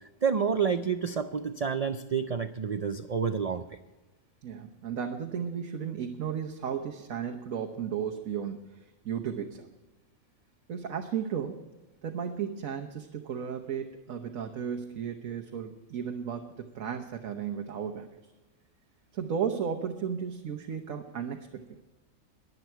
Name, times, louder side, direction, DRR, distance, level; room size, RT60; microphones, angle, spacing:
voice 1, 0.2-3.7, right 6 dB, 60° right, 9 dB, 0.4 m, -29 dB
voice 2, 4.4-9.7 10.7-11.6 12.0-18.1 19.1-21.7, right 7 dB, 85° right, 3 dB, 1.4 m, -34 dB
22.0 x 8.1 x 4.5 m, 1.2 s
omnidirectional pair, 1.4 m